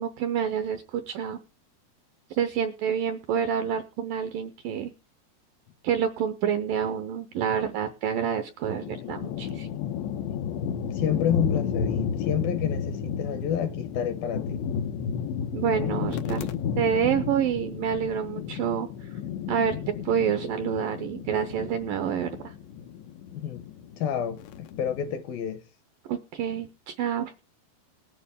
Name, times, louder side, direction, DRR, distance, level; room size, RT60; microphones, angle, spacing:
voice 1, 0.0-1.4 2.3-4.9 5.8-9.7 15.5-16.5 16.8-18.9 19.5-19.8 20.0-22.5 26.1-27.3, right 8 dB, 75° right, 2.0 m, -28 dB
sound 1, 8.6-25.2, left 7 dB, 90° left, 3.2 m, -32 dB
voice 2, 10.9-14.7 23.3-23.7 24.0-25.6, left 9 dB, 75° left, 2.4 m, -29 dB
19.0 x 9.2 x 3.6 m
omnidirectional pair, 4.9 m